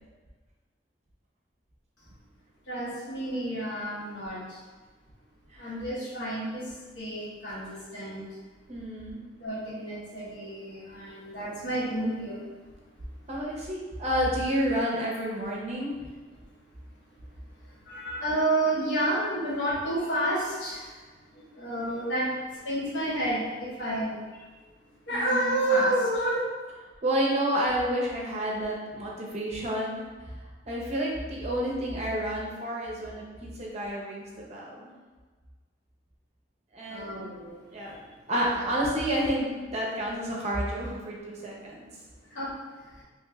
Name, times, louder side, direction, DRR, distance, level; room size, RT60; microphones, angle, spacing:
voice 1, 2.7-4.6 5.6-8.3 9.4-12.4 17.9-21.0 21.3-22.3 22.6-24.4 25.1-26.4 36.9-37.6 38.6-38.7 42.3-42.5 43.0-43.1, right 1 dB, 75° left, -6 dB, 0.9 m, -30 dB
voice 2, 8.7-9.2 13.3-16.1 25.1-25.6 27.0-30.4 30.7-34.9 36.7-37.2 37.7-38.0 38.3-41.8, equal, 35° right, -3 dB, 0.6 m, -30 dB
3.0 x 3.0 x 2.3 m, 1.4 s
head